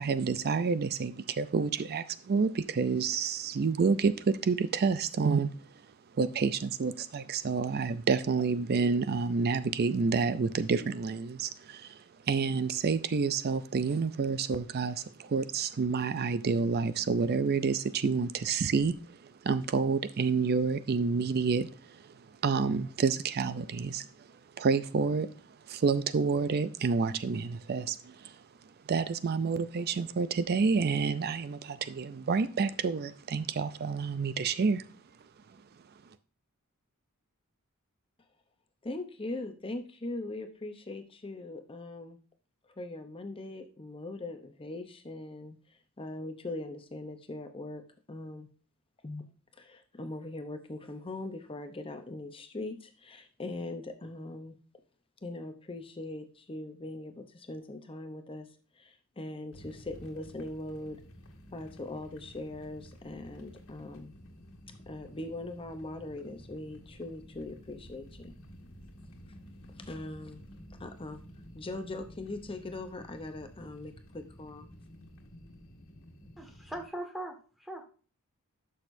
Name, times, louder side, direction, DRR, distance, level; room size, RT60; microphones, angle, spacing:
voice 1, 0.0-5.5 6.1-24.3 24.6-25.3 25.7-28.4 28.9-34.9, right 5 dB, 45° right, 14 dB, 0.4 m, -29 dB
voice 2, 38.8-42.2 42.8-45.6 46.0-47.8 48.1-48.5 49.0-49.2 49.6-54.6 55.2-58.5 58.8-61.0 61.5-64.1 64.9-68.3 69.8-70.4 70.7-71.2 71.5-74.7, left 2 dB, 25° left, 7 dB, 0.7 m, -41 dB
sound 1, 59.5-76.9, equal, 65° left, 1.7 m, -52 dB
voice 3, 76.4-77.8, right 1 dB, ahead, 2 dB, 1.6 m, -40 dB
11.5 x 6.3 x 2.6 m, 0.39 s
head